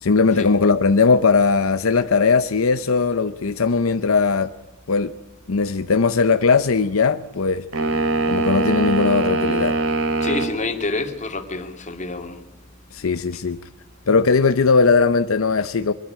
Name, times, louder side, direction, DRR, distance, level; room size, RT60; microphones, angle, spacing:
voice 1, 0.0-4.5 4.9-5.1 5.5-7.7 8.3-9.8 12.9-13.6 14.1-15.9, left 4 dB, 75° left, 0.7 m, -18 dB
sound 1, 7.7-10.6, right 2 dB, 75° right, 2.8 m, -22 dB
voice 2, 10.2-12.4, left 2 dB, 35° left, 2.5 m, -27 dB
23.5 x 13.5 x 8.7 m
head